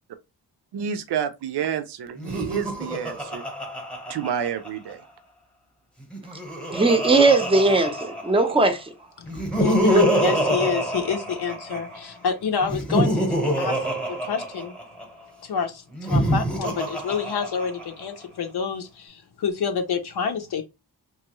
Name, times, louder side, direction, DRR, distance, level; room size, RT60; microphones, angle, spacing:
voice 1, 0.7-3.4 4.1-5.1, right 8 dB, 80° right, 0.5 m, -29 dB
Laughter, 2.2-4.9 6.0-8.6 9.3-12.0 12.6-15.0 15.9-18.0, equal, 5° left, 0.9 m, -25 dB
voice 2, 6.7-8.9, right 3 dB, 15° right, 0.6 m, -19 dB
voice 3, 9.2-14.7 15.4-20.6, left 6 dB, 70° left, 0.6 m, -28 dB
3.0 x 2.4 x 2.9 m
wide cardioid pair, 110°, 40 cm